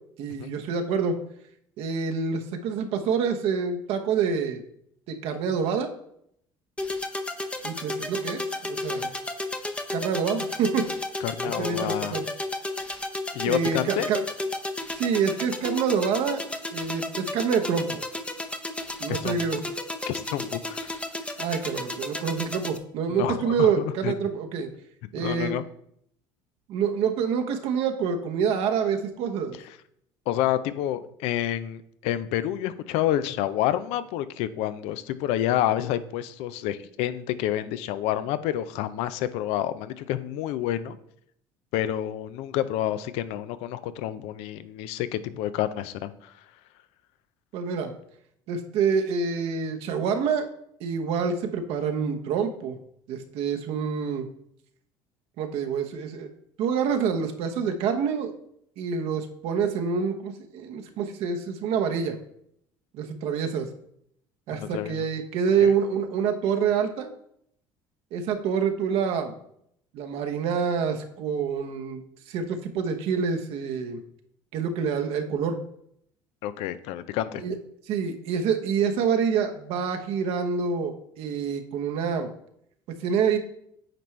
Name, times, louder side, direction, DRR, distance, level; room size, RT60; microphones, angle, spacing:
voice 1, 0.2-1.2 1.8-4.6 5.1-5.9 7.6-9.1 9.9-10.9 11.4-12.2 13.5-14.2 14.9-16.4 16.7-18.0 19.0-19.7 21.4-24.7 25.1-25.5 26.7-29.6 47.5-47.9 48.5-50.5 50.8-52.8 53.1-54.3 55.4-56.3 56.6-58.3 58.8-62.2 62.9-63.7 64.5-67.1 68.1-69.4 69.9-74.0 74.5-75.5 77.4-77.5 77.9-82.3 83.0-83.4, right 6 dB, 65° right, 5 dB, 1.0 m, -27 dB
sound 1, 6.8-22.8, left 2 dB, 10° left, 0.7 m, -33 dB
voice 2, 11.2-12.2 13.3-14.1 19.1-19.4 20.1-20.9 23.1-24.1 25.2-25.6 30.3-41.0 41.7-46.3 64.5-65.0 65.6-65.7 76.4-77.4, left 12 dB, 70° left, 14 dB, 0.5 m, -29 dB
9.1 x 4.5 x 3.2 m, 0.71 s
hypercardioid pair, 70°, 11 cm